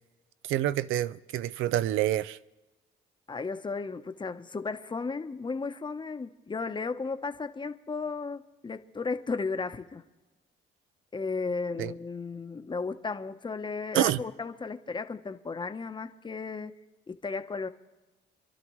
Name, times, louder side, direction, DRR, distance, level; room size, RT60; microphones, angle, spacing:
voice 1, 0.5-2.4 11.8-11.9 13.9-14.2, right 13 dB, 90° right, 0.5 m, -27 dB
voice 2, 3.3-10.0 11.1-16.7 17.1-17.7, left 4 dB, 25° left, 0.8 m, -34 dB
27.0 x 12.0 x 3.1 m
cardioid pair, 90°, 20 cm